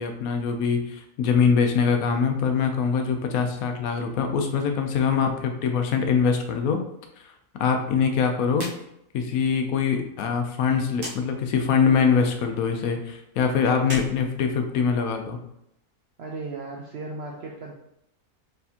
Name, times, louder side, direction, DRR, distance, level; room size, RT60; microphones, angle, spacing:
voice 1, 0.0-6.8 7.2-7.3 7.6-8.7 9.1-15.4, left 6 dB, 75° left, 5 dB, 1.0 m, -23 dB
sound 1, 8.5-8.8 9.1-9.2 10.9-11.2 13.8-15.1, equal, 40° right, 0.9 m, -37 dB
voice 2, 16.2-17.8, right 3 dB, 65° right, -1 dB, 0.6 m, -36 dB
4.4 x 3.4 x 2.8 m, 0.79 s
omnidirectional pair, 1.6 m